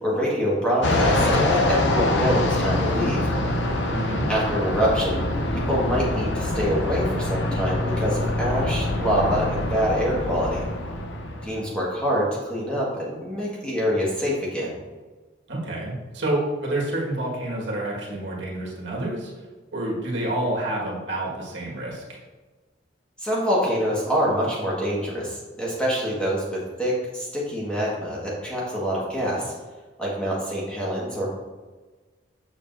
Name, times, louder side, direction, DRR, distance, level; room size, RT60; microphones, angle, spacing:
voice 1, 0.0-3.2 4.3-5.2 5.5-10.6 11.4-14.7 23.2-29.5 30.0-31.3, equal, 5° left, -6 dB, 1.5 m, -25 dB
Fixed-wing aircraft airplane, 0.8-11.7, left 1 dB, 80° left, 0.8 m, -25 dB
voice 2, 3.9-4.2 15.5-19.3 19.7-22.2, right 1 dB, 80° right, -3 dB, 1.7 m, -28 dB
7.1 x 6.5 x 2.6 m, 1.3 s
head